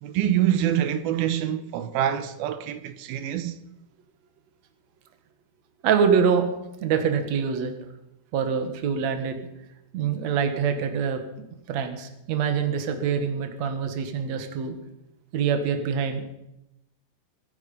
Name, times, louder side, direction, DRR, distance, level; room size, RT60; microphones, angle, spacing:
voice 1, 0.0-3.6, right 11 dB, 90° right, 2.8 m, -25 dB
voice 2, 5.8-6.4 6.8-7.7 8.3-9.4 9.9-11.2 11.7-14.8 15.3-16.2, right 7 dB, 55° right, 2.5 m, -25 dB
24.5 x 9.4 x 5.5 m
omnidirectional pair, 4.2 m